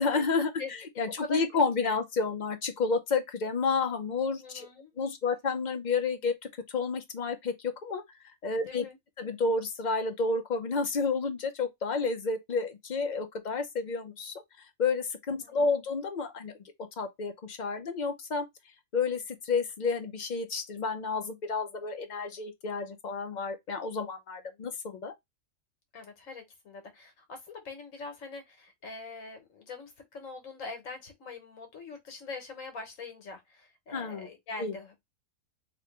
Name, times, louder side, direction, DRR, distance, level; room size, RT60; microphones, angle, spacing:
voice 1, 0.0-4.7 5.0-6.3 6.7-8.8 9.2-14.4 14.8-16.6 17.0-18.5 18.9-25.1 33.9-34.3 34.6-34.9, left 4 dB, 45° left, 0.6 m, -30 dB
voice 2, 4.4-4.9 8.7-9.0 15.4-15.7 25.9-34.9, left 3 dB, 75° left, 1.5 m, -42 dB
3.0 x 3.0 x 3.2 m
omnidirectional pair, 1.4 m